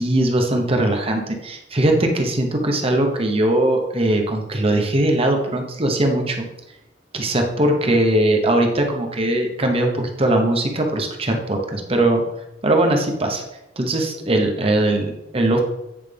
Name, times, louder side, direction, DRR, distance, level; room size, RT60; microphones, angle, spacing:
voice 1, 0.0-6.4 7.1-12.2 12.6-13.4 13.8-15.6, right 1 dB, 30° right, 3 dB, 1.0 m, -20 dB
8.8 x 4.9 x 3.4 m, 0.89 s
head